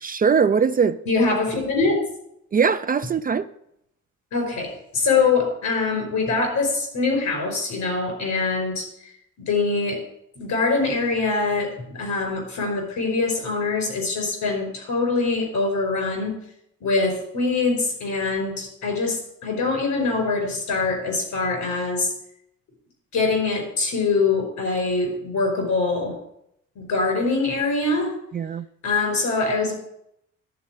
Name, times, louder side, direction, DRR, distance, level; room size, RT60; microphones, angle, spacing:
voice 1, 0.0-1.0 2.5-3.5 28.3-28.7, right 6 dB, 30° right, 0.4 m, -21 dB
voice 2, 1.1-2.0 4.3-8.8 9.4-10.0 10.4-16.3 16.8-22.1 23.1-26.1 26.7-28.1 28.8-29.7, left 3 dB, 80° left, 5.0 m, -23 dB
12.0 x 4.2 x 7.5 m
cardioid pair, 90°, 30 cm